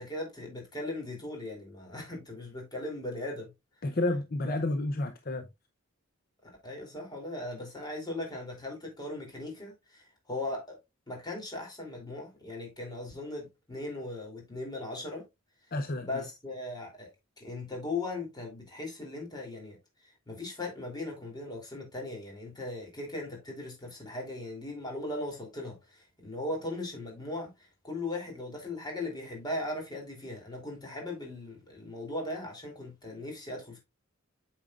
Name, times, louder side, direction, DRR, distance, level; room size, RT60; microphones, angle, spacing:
voice 1, 0.0-3.5 4.4-4.6 6.4-10.7 11.1-15.2 16.0-17.1 17.4-19.8 20.0-33.8, left 2 dB, 20° left, 3.1 m, -38 dB
voice 2, 3.8-5.4 15.7-16.1, left 2 dB, 45° left, 0.7 m, -30 dB
8.6 x 6.5 x 2.4 m
head